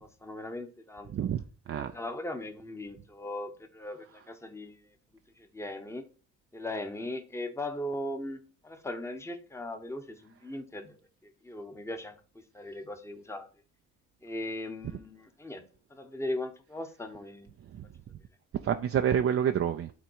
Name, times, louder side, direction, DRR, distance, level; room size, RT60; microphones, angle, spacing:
voice 1, 0.0-1.3 1.7-4.8 5.4-6.1 6.5-13.5 14.2-15.6 15.9-17.5, left 1 dB, 10° left, 1.1 m, -39 dB
voice 2, 1.1-1.9 17.7-17.9 18.6-19.9, right 9 dB, 50° right, 0.6 m, -28 dB
9.2 x 3.8 x 4.6 m
cardioid pair, 90°, 30 cm